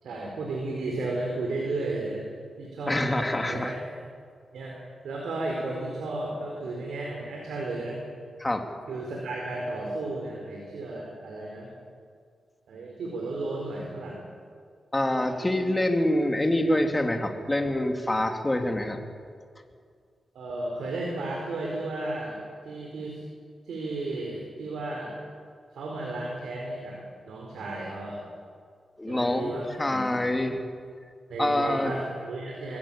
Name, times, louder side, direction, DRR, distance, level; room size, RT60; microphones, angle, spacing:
voice 1, 0.0-2.2 2.6-3.8 4.5-4.8 5.0-8.0 8.9-11.7 12.7-14.3 15.4-15.6 20.3-22.4 22.6-23.2 23.6-25.1 25.7-27.0 27.3-28.2 29.1-30.2 31.3-32.8, right 2 dB, 90° right, -1 dB, 4.6 m, -33 dB
voice 2, 2.9-3.7 8.4-8.6 14.9-19.0 29.0-30.6 31.4-31.9, left 1 dB, 15° left, 4 dB, 2.7 m, -26 dB
23.0 x 16.0 x 9.0 m, 2.1 s
cardioid pair, 75°, 0 cm